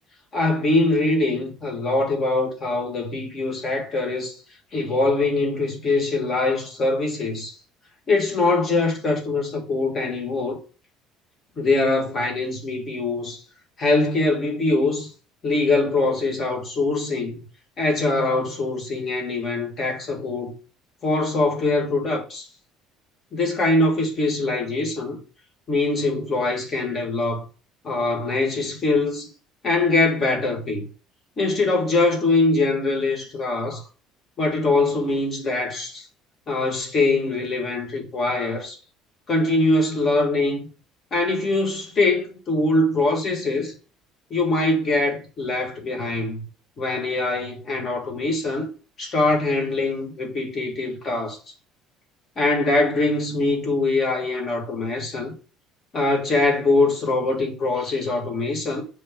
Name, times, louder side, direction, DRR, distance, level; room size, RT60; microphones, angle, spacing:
voice 1, 0.3-4.3 4.7-7.5 8.1-10.6 11.6-13.4 13.8-15.1 15.4-17.4 17.8-20.5 21.0-22.5 23.3-25.2 25.7-27.5 27.8-29.3 29.6-30.9 31.4-33.8 34.4-36.1 36.5-38.8 39.3-40.7 41.1-43.7 44.3-46.4 46.8-48.7 49.0-51.4 52.4-55.3 55.9-58.8, left 2 dB, 30° left, 1.5 m, -23 dB
6.4 x 3.4 x 5.1 m
cardioid pair, 170°, 0 cm